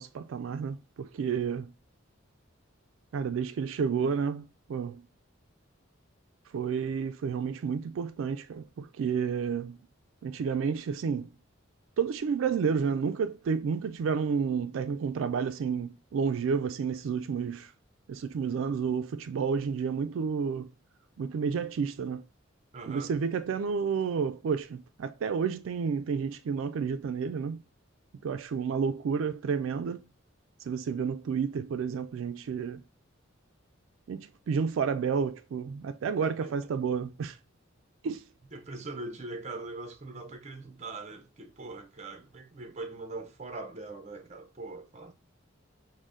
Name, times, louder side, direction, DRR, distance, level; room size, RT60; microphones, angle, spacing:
voice 1, 0.0-1.7 3.1-5.0 6.5-9.8 10.2-11.3 12.0-17.7 18.1-20.7 21.2-22.2 22.9-27.6 28.2-30.0 30.6-32.8 34.1-37.4 38.0-38.2, right 6 dB, 75° right, 0.3 m, -30 dB
voice 2, 22.7-23.1 36.2-36.6 38.5-45.1, right 3 dB, 35° right, 0.6 m, -41 dB
6.2 x 2.1 x 3.6 m
head